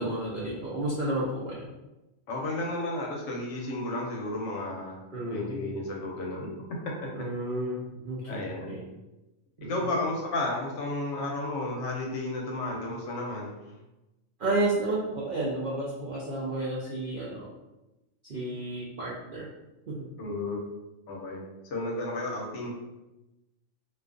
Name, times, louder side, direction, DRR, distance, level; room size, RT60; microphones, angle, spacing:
voice 1, 0.0-1.7 5.1-5.8 7.1-8.8 9.6-9.9 14.4-17.5 18.2-19.5 19.9-20.1, right 2 dB, 70° right, -6 dB, 0.5 m, -32 dB
voice 2, 2.3-5.0 5.3-6.5 8.3-8.8 9.7-13.5 20.2-20.6 21.1-22.7, left 2 dB, 70° left, -1 dB, 0.9 m, -32 dB
2.4 x 2.2 x 2.4 m, 1.0 s
omnidirectional pair, 1.4 m